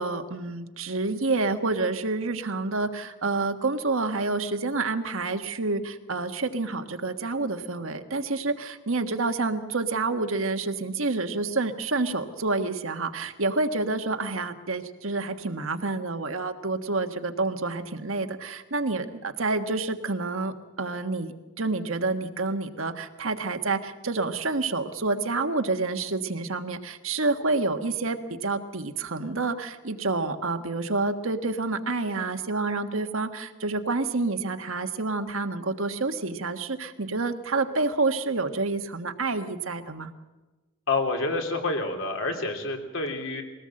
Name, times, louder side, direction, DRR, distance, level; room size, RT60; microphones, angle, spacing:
voice 1, 0.0-40.1, right 3 dB, 75° right, 7 dB, 1.5 m, -28 dB
voice 2, 40.9-43.4, left 3 dB, 70° left, 3 dB, 3.4 m, -28 dB
22.5 x 18.5 x 7.7 m, 1.2 s
head